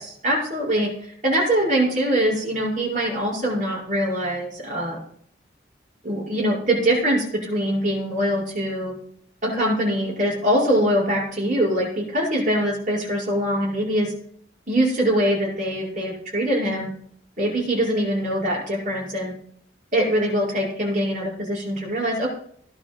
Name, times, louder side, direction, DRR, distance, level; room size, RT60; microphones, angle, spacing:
voice 1, 0.2-5.0 6.0-8.9 9.4-14.1 14.7-16.9 17.4-19.3 19.9-22.3, equal, 45° right, -4 dB, 6.0 m, -23 dB
18.5 x 11.0 x 2.3 m, 0.65 s
head